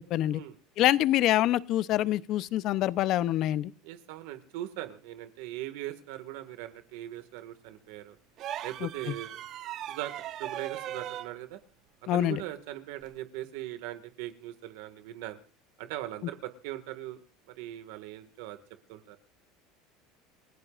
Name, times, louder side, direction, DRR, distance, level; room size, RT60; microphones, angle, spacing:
voice 1, 0.1-0.4 0.8-3.7 8.8-8.9 12.1-12.4, left 14 dB, 50° left, 17 dB, 0.7 m, -25 dB
voice 2, 3.8-8.2 8.6-9.4 9.8-11.6 12.1-15.4 15.8-17.2 17.5-18.6 18.9-19.2, right 14 dB, 75° right, 9 dB, 1.9 m, -40 dB
sound 1, 8.4-11.3 13.0-13.2, right 11 dB, 45° right, 1.2 m, -38 dB
29.0 x 16.0 x 2.5 m, 0.39 s
supercardioid pair, 145°, 0 cm